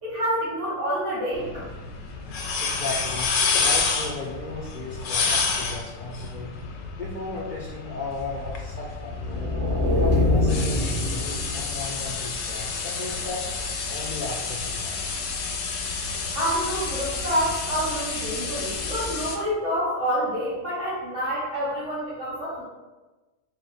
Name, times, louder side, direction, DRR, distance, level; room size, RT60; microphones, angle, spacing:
voice 1, 0.0-1.6 16.3-22.6, equal, 70° right, -9 dB, 1.2 m, -27 dB
sound 1, 1.3-19.4, left 4 dB, 85° left, 1.0 m, -30 dB
voice 2, 2.6-6.5 6.9-9.5 10.0-13.5 13.9-15.0, left 3 dB, 60° left, -3 dB, 0.5 m, -35 dB
sound 2, 9.0-12.0, left 2 dB, 50° right, 1.1 m, -24 dB
3.8 x 2.1 x 4.0 m, 1.2 s
omnidirectional pair, 1.3 m